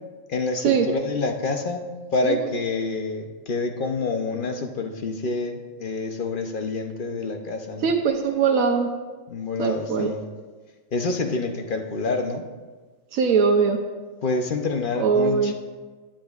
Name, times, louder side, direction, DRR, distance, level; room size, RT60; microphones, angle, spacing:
voice 1, 0.3-7.9 9.3-10.2 10.9-12.5 14.2-15.5, left 3 dB, 45° left, 5 dB, 0.8 m, -27 dB
voice 2, 7.8-8.9 9.6-10.1 13.1-13.8 15.0-15.5, right 5 dB, 85° right, 3 dB, 1.2 m, -21 dB
18.0 x 8.9 x 2.4 m, 1.4 s
omnidirectional pair, 1.4 m